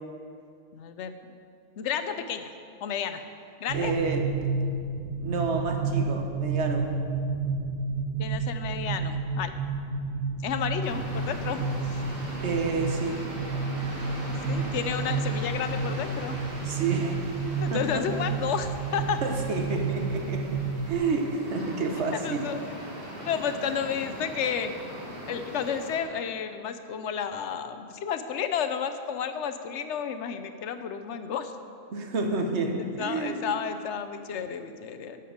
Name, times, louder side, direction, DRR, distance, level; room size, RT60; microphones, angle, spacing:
voice 1, 0.7-1.4 1.8-2.5 2.8-3.2 3.6-3.9 8.2-9.5 10.4-12.0 14.5-16.4 17.6-19.2 22.1-22.6 23.3-24.7 25.3-31.5 33.0-35.2, left 7 dB, 75° left, 9 dB, 0.9 m, -31 dB
voice 2, 3.7-4.3 5.2-6.9 12.4-13.2 16.6-17.2 17.7-18.0 19.2-22.4 31.9-33.5, right 3 dB, 70° right, 3 dB, 1.3 m, -29 dB
sound 1, 3.7-21.0, right 4 dB, 85° right, 1.3 m, -31 dB
sound 2, 10.8-26.0, equal, 50° right, 1.8 m, -40 dB
11.5 x 6.8 x 5.0 m, 2.4 s
omnidirectional pair, 1.2 m